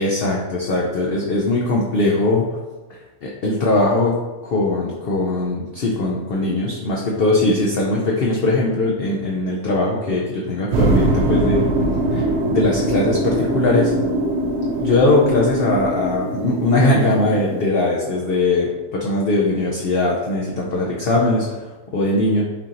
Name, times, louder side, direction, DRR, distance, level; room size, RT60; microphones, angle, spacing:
voice 1, 0.0-2.4 3.2-11.6 12.1-13.9 14.8-22.4, left 2 dB, 75° left, -3 dB, 0.5 m, -20 dB
sound 1, 10.7-17.7, right 2 dB, 65° right, 0.6 m, -22 dB
5.5 x 2.5 x 2.8 m, 1.2 s
omnidirectional pair, 1.6 m